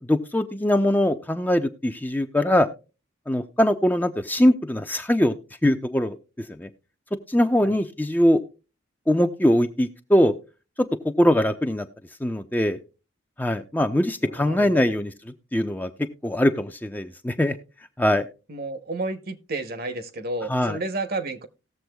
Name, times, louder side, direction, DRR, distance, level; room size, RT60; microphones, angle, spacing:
voice 1, 0.1-2.7 3.3-5.3 5.6-6.2 6.6-6.7 7.3-8.4 9.1-10.3 11.2-11.9 12.2-12.8 13.4-15.1 15.5-15.9 16.2-17.5 18.0-18.3 20.5-20.8, left 1 dB, 10° left, 7 dB, 0.5 m, -21 dB
voice 2, 14.2-15.0 18.5-21.5, right 2 dB, 50° right, 11 dB, 0.9 m, -31 dB
18.5 x 7.1 x 2.3 m, 0.31 s
head